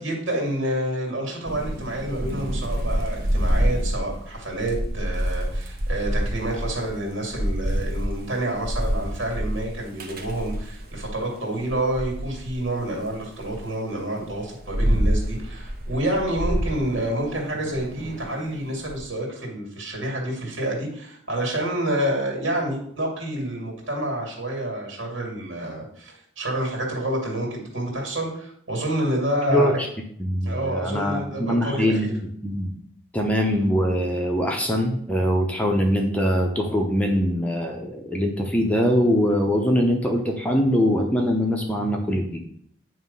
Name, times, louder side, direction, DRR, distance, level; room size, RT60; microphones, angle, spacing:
voice 1, 0.0-29.7 30.4-32.1, right 1 dB, 75° right, 0 dB, 2.4 m, -28 dB
Thunder / Rain, 1.4-11.2 11.6-13.6 14.2-19.0, equal, 45° right, 1.0 m, -27 dB
voice 2, 29.5-29.9 30.2-32.1 32.4-32.7 33.1-42.4, equal, 5° left, 1 dB, 0.7 m, -22 dB
9.3 x 3.1 x 5.4 m, 0.66 s
head